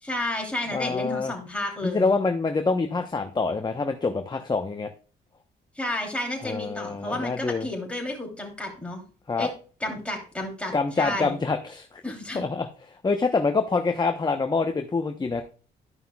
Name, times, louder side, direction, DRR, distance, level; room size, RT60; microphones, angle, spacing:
voice 1, 0.0-2.2 5.8-9.0 9.4-9.5 9.8-11.3 12.0-12.4, left 1 dB, 5° left, 0 dB, 3.0 m, -31 dB
voice 2, 0.7-1.3 1.8-4.9 6.4-7.7 9.3-9.5 10.7-12.7 13.0-15.4, left 4 dB, 20° left, 6 dB, 0.8 m, -26 dB
12.5 x 5.6 x 2.3 m, 0.37 s
cardioid pair, 90°, 20 cm